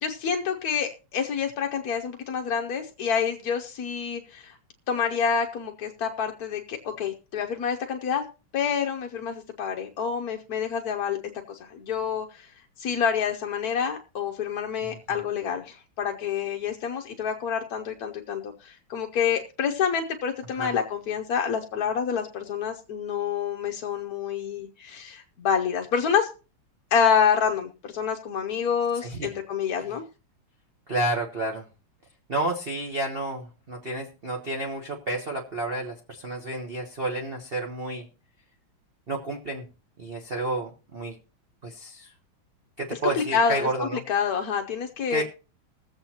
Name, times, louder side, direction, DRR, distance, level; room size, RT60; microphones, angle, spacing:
voice 1, 0.0-4.6 4.9-8.2 8.5-11.2 11.5-12.5 12.8-26.3 26.9-30.0 42.9-45.2, left 7 dB, 60° left, 3 dB, 1.0 m, -27 dB
voice 2, 30.9-31.6 32.3-38.1 39.1-39.7 40.0-41.1 41.6-42.1 42.8-44.0 45.1-45.2, right 2 dB, 35° right, 1 dB, 1.0 m, -30 dB
21.0 x 7.9 x 2.9 m, 0.34 s
omnidirectional pair, 2.3 m